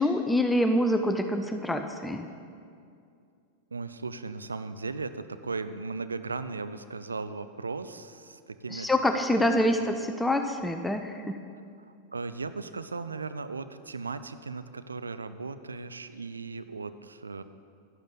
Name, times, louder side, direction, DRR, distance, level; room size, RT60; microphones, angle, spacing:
voice 1, 0.0-2.3 8.7-11.4, left 1 dB, 5° left, 6 dB, 0.6 m, -26 dB
voice 2, 3.7-8.9 9.3-9.5 12.1-17.4, right 4 dB, 75° right, 12 dB, 0.4 m, -37 dB
11.5 x 11.0 x 3.9 m, 2.4 s
figure-of-eight pair, 90°, 0 cm